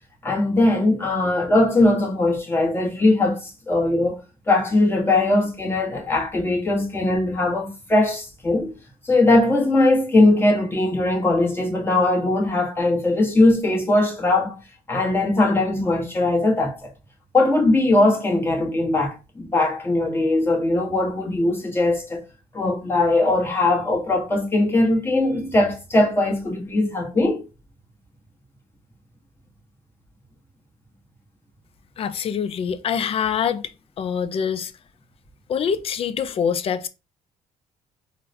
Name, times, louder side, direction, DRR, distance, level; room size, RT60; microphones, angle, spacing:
voice 1, 0.2-8.7 9.0-14.6 14.9-16.9 17.3-22.2 22.5-27.4, left 2 dB, 15° left, 1.1 m, -20 dB
voice 2, 32.0-33.6 34.0-34.7 35.5-36.9, left 7 dB, 45° left, 0.4 m, -24 dB
3.8 x 2.1 x 2.7 m
cardioid pair, 100°, 14 cm